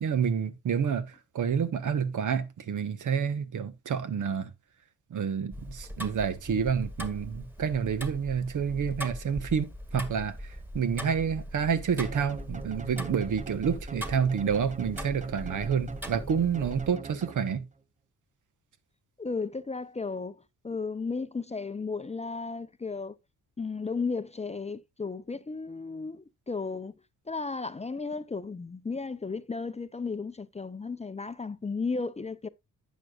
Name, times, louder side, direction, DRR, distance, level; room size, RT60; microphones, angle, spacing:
voice 1, 0.0-1.1 1.3-4.5 5.1-10.4 10.7-17.6, right 7 dB, 65° right, 1.2 m, -29 dB
Tick-tock, 5.5-16.9, equal, 5° right, 1.8 m, -41 dB
sound 1, 12.0-17.8, right 4 dB, 20° right, 0.7 m, -43 dB
voice 2, 19.2-23.1 23.6-26.9 27.3-32.5, left 4 dB, 20° left, 0.5 m, -34 dB
11.5 x 8.3 x 2.4 m
cardioid pair, 75°, 32 cm